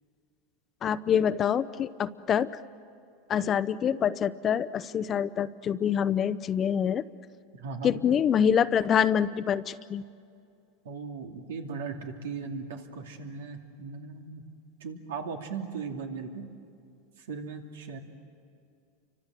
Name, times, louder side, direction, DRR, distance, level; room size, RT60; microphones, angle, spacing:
voice 1, 0.8-2.5 3.3-7.0 7.8-10.1, left 8 dB, 30° left, 15 dB, 0.8 m, -26 dB
voice 2, 7.5-7.9 10.8-14.4 14.8-16.4 17.3-18.0, right 5 dB, 85° right, 3 dB, 2.6 m, -38 dB
30.0 x 25.0 x 7.7 m, 2.4 s
supercardioid pair, 115°, 0 cm